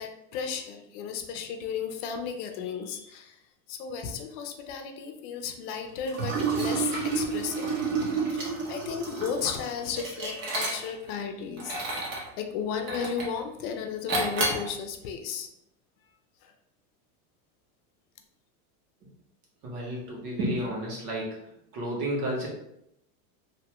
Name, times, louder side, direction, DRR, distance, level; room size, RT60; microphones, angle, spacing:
voice 1, 0.0-3.4 3.7-7.7 8.3-11.8 12.0-15.5 16.4-16.5, left 7 dB, 55° left, 5 dB, 0.6 m, -34 dB
Liquid, 6.1-11.1 11.6-12.3 12.9-13.4 14.1-14.7, right 4 dB, 50° right, 1.1 m, -30 dB
voice 2, 19.6-21.4 21.7-22.5, right 1 dB, 90° right, -2 dB, 1.3 m, -31 dB
2.8 x 2.1 x 2.9 m, 0.78 s
supercardioid pair, 130°, 45 cm